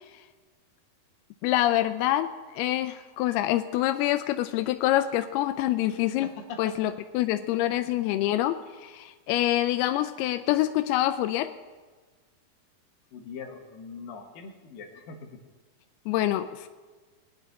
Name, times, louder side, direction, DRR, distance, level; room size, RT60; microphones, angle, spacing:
voice 1, 1.4-6.3 6.6-11.5 16.1-16.7, left 14 dB, 90° left, 9 dB, 2.5 m, -26 dB
voice 2, 6.2-6.7 13.1-15.4, left 5 dB, 65° left, 2 dB, 3.1 m, -41 dB
21.0 x 10.0 x 4.1 m, 1.4 s
omnidirectional pair, 4.4 m